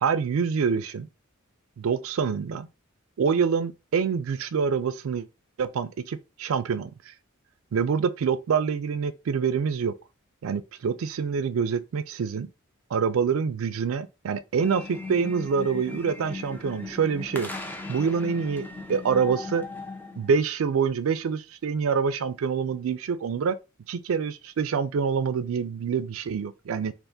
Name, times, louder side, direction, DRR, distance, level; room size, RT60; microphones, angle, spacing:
voice 1, 0.0-1.1 1.8-2.7 3.2-5.3 5.6-6.9 7.7-9.9 10.4-12.5 12.9-17.5 17.9-19.7 20.2-23.6 23.9-26.9, right 6 dB, 75° right, 0.4 m, -26 dB
sound 1, 14.6-20.3, left 3 dB, 10° left, 0.4 m, -38 dB
3.5 x 2.5 x 2.6 m
head